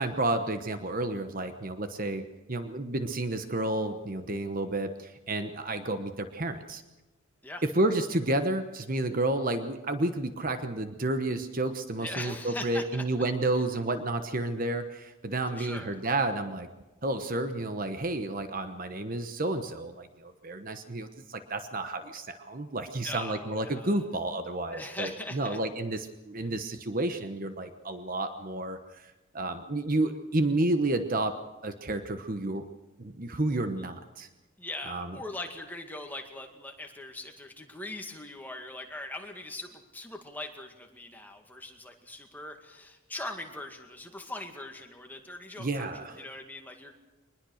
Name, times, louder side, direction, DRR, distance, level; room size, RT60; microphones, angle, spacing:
voice 1, 0.0-6.8 7.6-16.7 17.0-31.3 31.6-32.6 33.0-34.3 34.8-35.2 45.6-46.3, right 2 dB, 40° right, 8 dB, 1.1 m, -31 dB
voice 2, 12.0-13.0 15.5-15.9 23.0-24.0 24.7-25.6 34.6-46.9, left 2 dB, 10° left, 3 dB, 2.1 m, -41 dB
23.0 x 20.5 x 6.5 m, 1.1 s
head